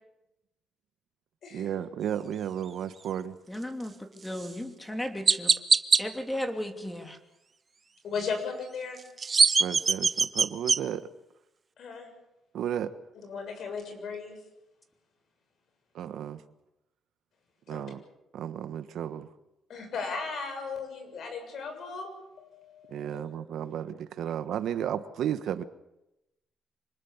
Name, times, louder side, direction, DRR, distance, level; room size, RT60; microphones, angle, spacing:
voice 1, 1.5-3.3 9.6-11.1 12.5-12.9 15.9-16.4 17.7-18.0 18.3-19.3 22.9-25.6, right 9 dB, 75° right, 11 dB, 1.3 m, -33 dB
voice 2, 3.5-5.5 6.0-7.2, left 1 dB, 10° left, 5 dB, 2.9 m, -35 dB
Chirp tweet, 4.4-4.5 5.3-6.0 9.0-10.8, right 5 dB, 35° right, 0.9 m, -22 dB
voice 3, 8.0-9.0 11.8-12.1 13.2-14.4 17.7-17.9 19.7-22.1 22.4-23.4, left 5 dB, 65° left, 5 dB, 6.8 m, -36 dB
26.0 x 20.0 x 7.3 m, 0.93 s
cardioid pair, 115°, 0 cm